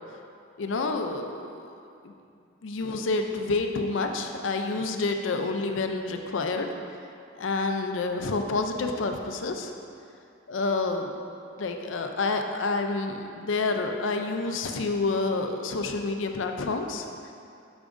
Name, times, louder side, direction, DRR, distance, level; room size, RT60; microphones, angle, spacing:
voice 1, 0.6-1.6 2.0-2.1 2.6-6.7 7.4-9.7 10.5-11.1 11.6-17.1, left 3 dB, 75° left, 5 dB, 0.5 m, -28 dB
8.3 x 6.1 x 2.6 m, 2.6 s
head